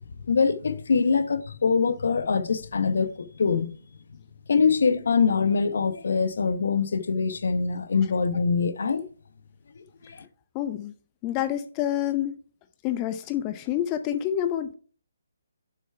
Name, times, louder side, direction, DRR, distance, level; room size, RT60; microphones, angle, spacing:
voice 1, 0.3-3.7 4.5-9.0 10.0-10.2, left 5 dB, 65° left, 0.9 m, -24 dB
voice 2, 10.5-10.9 11.2-12.3 12.8-14.7, left 11 dB, 25° left, 0.6 m, -27 dB
6.9 x 6.4 x 4.6 m
figure-of-eight pair, 145°, 0 cm